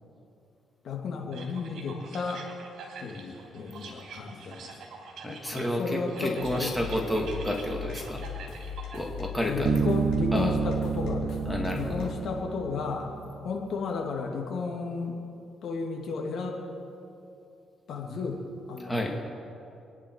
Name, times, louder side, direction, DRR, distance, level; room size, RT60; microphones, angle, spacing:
voice 1, 0.8-2.5 3.0-4.8 5.5-7.1 9.4-13.1 13.4-15.2 15.6-16.6 17.9-18.4 18.7-19.1, left 4 dB, 65° left, 0 dB, 2.8 m, -33 dB
sound 1, 1.3-9.1, right 4 dB, 70° right, 3.3 m, -46 dB
voice 2, 5.2-8.2 8.9-9.7 10.3-10.5 11.5-12.1 18.8-19.2, equal, 5° left, 0 dB, 2.4 m, -30 dB
sound 2, 6.4-12.1, left 8 dB, 90° left, 2.7 m, -39 dB
Bass guitar, 9.6-13.3, right 7 dB, 45° right, 0.3 m, -29 dB
27.5 x 10.5 x 4.9 m, 2.7 s
cardioid pair, 90°, 0 cm